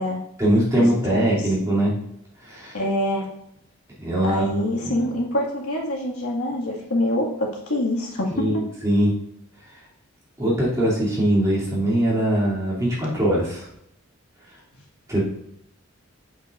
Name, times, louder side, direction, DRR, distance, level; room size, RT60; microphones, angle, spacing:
voice 1, 0.4-1.9 2.4-2.8 4.0-4.9 8.3-9.1 10.4-13.7 15.1-15.2, right 1 dB, 15° right, -7 dB, 2.8 m, -21 dB
voice 2, 1.0-1.5 2.7-3.3 4.2-8.5, left 1 dB, 85° left, -3 dB, 2.0 m, -25 dB
8.3 x 8.2 x 2.6 m, 0.76 s
head